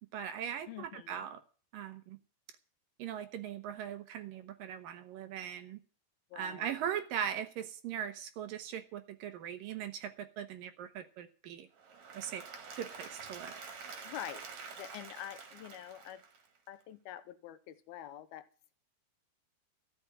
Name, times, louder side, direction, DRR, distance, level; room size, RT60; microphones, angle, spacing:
voice 1, 0.1-1.4 1.7-2.2 3.0-5.8 6.4-11.7 12.1-12.4 12.8-13.5, right 9 dB, 70° right, 9 dB, 2.6 m, -40 dB
voice 2, 0.7-1.2 6.3-6.8 14.0-14.4 14.7-16.2 16.7-18.7, left 12 dB, 80° left, 11 dB, 2.6 m, -46 dB
Applause / Crowd, 11.8-16.7, right 5 dB, 50° right, 2.9 m, -48 dB
14.0 x 6.1 x 9.3 m, 0.39 s
omnidirectional pair, 4.6 m